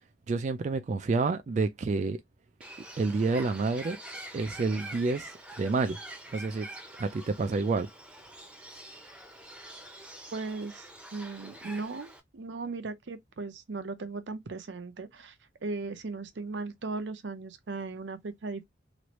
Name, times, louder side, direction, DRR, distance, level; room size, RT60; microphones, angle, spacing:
voice 1, 0.3-2.2 3.0-4.0 4.3-6.0 6.3-6.7 7.0-7.9, right 3 dB, 40° right, 0.3 m, -29 dB
Bird, 2.6-12.2, right 1 dB, 5° right, 0.6 m, -46 dB
voice 2, 10.3-15.3 15.6-18.7, right 3 dB, 80° right, 0.6 m, -37 dB
3.1 x 2.5 x 2.9 m
head